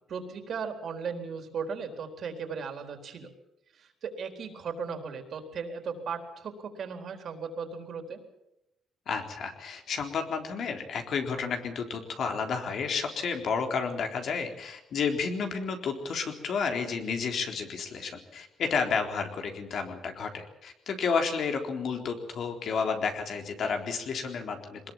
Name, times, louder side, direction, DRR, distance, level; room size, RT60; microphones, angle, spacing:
voice 1, 0.1-3.3 3.7-8.2, right 5 dB, 55° right, 6 dB, 4.0 m, -37 dB
voice 2, 9.1-24.9, left 5 dB, 60° left, 4 dB, 3.8 m, -31 dB
23.0 x 20.5 x 7.5 m, 0.86 s
cardioid pair, 130°, 0 cm